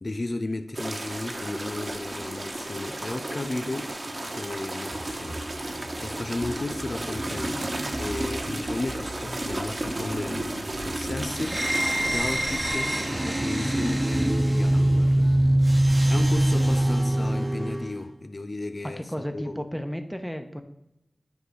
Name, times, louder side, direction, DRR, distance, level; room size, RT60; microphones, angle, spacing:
voice 1, 0.0-3.9 4.3-5.4 6.0-11.6 12.1-15.3 16.1-19.6, left 2 dB, 55° left, 0.6 m, -34 dB
sound 1, 0.7-13.3, right 1 dB, 50° right, 1.2 m, -33 dB
sound 2, 4.9-16.9, right 1 dB, 80° right, 1.7 m, -41 dB
sound 3, 11.4-18.0, right 1 dB, 25° right, 1.1 m, -23 dB
voice 2, 18.8-20.6, equal, ahead, 1.1 m, -33 dB
9.4 x 4.9 x 4.7 m
cardioid pair, 45°, 0 cm